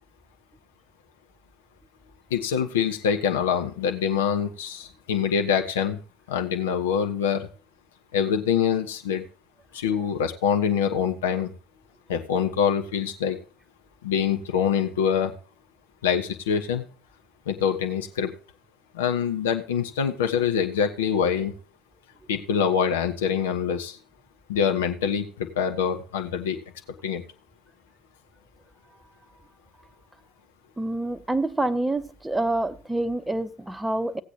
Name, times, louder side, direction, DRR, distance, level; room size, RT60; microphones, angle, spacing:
voice 1, 2.3-6.0 6.3-7.5 8.1-9.2 9.7-11.5 12.1-13.4 14.0-15.3 16.0-16.8 17.5-18.3 18.9-21.5 22.3-24.0 24.5-26.6 27.0-27.2, left 7 dB, 75° left, 1.1 m, -25 dB
voice 2, 30.8-34.2, right 2 dB, 10° right, 0.9 m, -27 dB
17.5 x 8.2 x 2.9 m
figure-of-eight pair, 65°, 0 cm